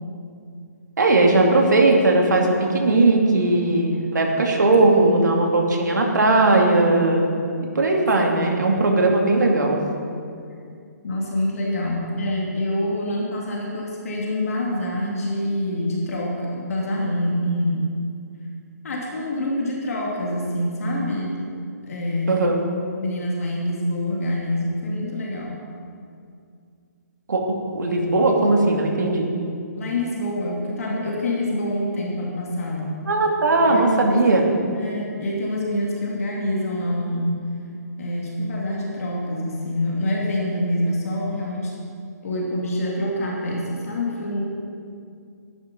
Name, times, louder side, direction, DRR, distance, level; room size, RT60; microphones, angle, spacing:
voice 1, 1.0-7.3 7.7-9.8 22.3-22.6 27.3-27.4 27.7-29.3 33.1-34.5, right 2 dB, 90° right, 1 dB, 2.5 m, -18 dB
voice 2, 4.9-5.3 8.3-8.5 11.0-18.0 18.8-21.4 21.8-22.4 23.0-25.6 29.8-33.0 33.7-34.2 34.7-37.5 38.0-41.8 42.2-44.5, left 1 dB, 55° left, -2 dB, 2.4 m, -26 dB
13.0 x 10.5 x 5.3 m, 2.3 s
hypercardioid pair, 170°, 9 cm